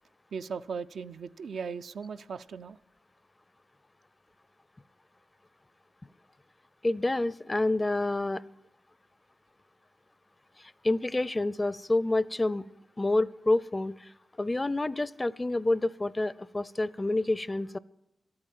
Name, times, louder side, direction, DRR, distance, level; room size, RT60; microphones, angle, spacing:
voice 1, 0.3-2.8, right 5 dB, 75° right, 9 dB, 0.4 m, -38 dB
voice 2, 6.8-8.4 10.8-12.7 13.0-14.1 14.4-17.8, left 2 dB, 30° left, 20 dB, 0.5 m, -28 dB
12.5 x 8.8 x 9.0 m, 0.84 s
supercardioid pair, 40°, 0 cm